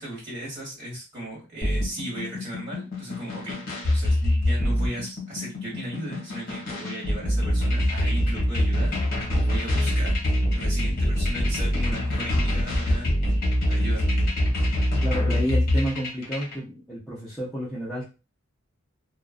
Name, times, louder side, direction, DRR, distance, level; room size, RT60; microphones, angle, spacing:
voice 1, 0.0-10.2 10.5-13.1 13.7-14.2, right 1 dB, 35° right, -6 dB, 1.4 m, -36 dB
sound 1, 1.6-16.6, left 1 dB, 45° left, 0.9 m, -24 dB
voice 2, 15.0-18.1, equal, ahead, -10 dB, 0.6 m, -30 dB
2.5 x 2.1 x 2.4 m, 0.29 s
head